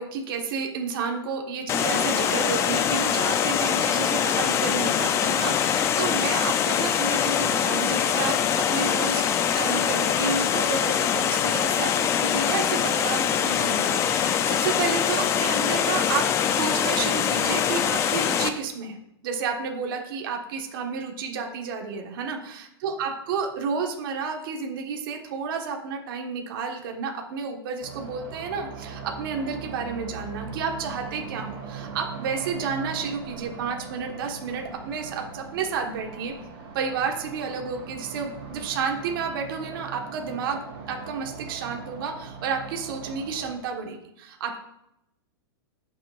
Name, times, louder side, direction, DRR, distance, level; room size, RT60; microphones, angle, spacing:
voice 1, 0.0-9.2 9.5-16.2 16.5-36.3 36.7-40.6 40.9-44.6, right 5 dB, 55° right, 2 dB, 1.5 m, -31 dB
Water, 1.7-18.5, left 8 dB, 20° left, 0.5 m, -23 dB
sound 1, 27.8-43.6, right 5 dB, 35° right, 2.7 m, -40 dB
15.0 x 6.3 x 2.5 m, 0.83 s
supercardioid pair, 155°, 13 cm